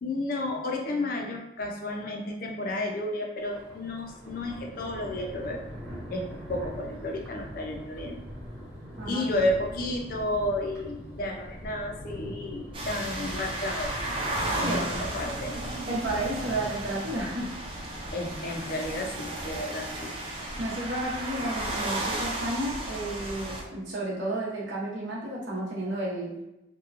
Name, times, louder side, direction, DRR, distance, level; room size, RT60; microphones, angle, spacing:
voice 1, 0.0-5.6 6.1-8.2 9.1-13.9 14.6-15.6 18.1-20.1, left 1 dB, 45° left, 1 dB, 0.4 m, -32 dB
Thunder, 3.4-18.1, equal, 5° right, 0.8 m, -43 dB
sound 1, 12.7-23.6, right 1 dB, 30° right, 0.4 m, -34 dB
voice 2, 14.5-15.1 15.9-17.5 20.6-26.3, right 1 dB, 70° right, -4 dB, 0.8 m, -32 dB
2.8 x 2.2 x 2.4 m, 0.94 s
head